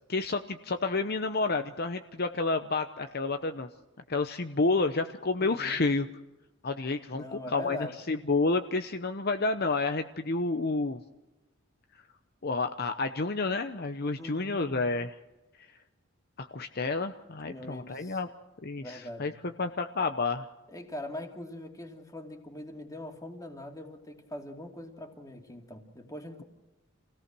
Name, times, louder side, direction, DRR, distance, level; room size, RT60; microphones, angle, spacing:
voice 1, 0.1-3.7 4.1-6.1 6.6-11.0 12.4-15.1 16.4-18.3 18.6-19.3 19.6-20.5, left 3 dB, 50° left, 7 dB, 0.9 m, -30 dB
voice 2, 5.4-5.8 7.1-8.0 14.2-14.7 17.4-18.2 18.8-19.4 20.7-26.4, left 1 dB, 15° left, 4 dB, 2.5 m, -42 dB
27.5 x 17.5 x 6.2 m, 1.0 s
head